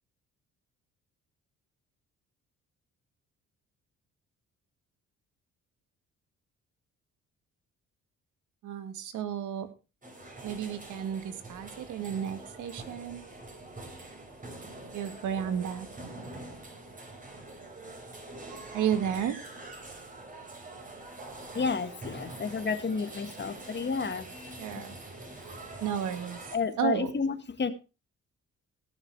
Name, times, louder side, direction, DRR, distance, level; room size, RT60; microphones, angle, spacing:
voice 1, 8.6-9.7 10.4-13.2 14.9-15.9 18.7-19.4 24.6-25.0 25.8-26.4 26.8-27.1, right 9 dB, 80° right, 1.9 m, -32 dB
sound 1, 10.0-26.6, right 2 dB, 25° right, 5.0 m, -45 dB
voice 2, 21.5-24.3 24.7-25.0 26.5-27.7, left 5 dB, 35° left, 1.9 m, -31 dB
18.0 x 6.6 x 4.8 m
cardioid pair, 90°, 30 cm